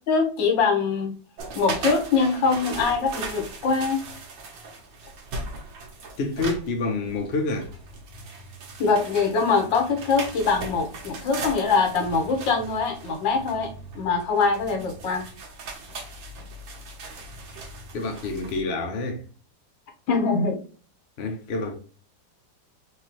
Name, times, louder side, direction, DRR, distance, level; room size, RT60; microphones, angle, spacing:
voice 1, 0.1-1.2 1.5-4.0 8.8-15.3 20.1-20.6, left 4 dB, 80° left, 1.7 m, -23 dB
sound 1, 1.4-18.6, right 3 dB, 90° right, 1.8 m, -38 dB
voice 2, 6.2-7.7 17.9-19.2 21.2-21.7, left 3 dB, 50° left, 0.8 m, -28 dB
4.7 x 2.8 x 3.0 m
omnidirectional pair, 2.0 m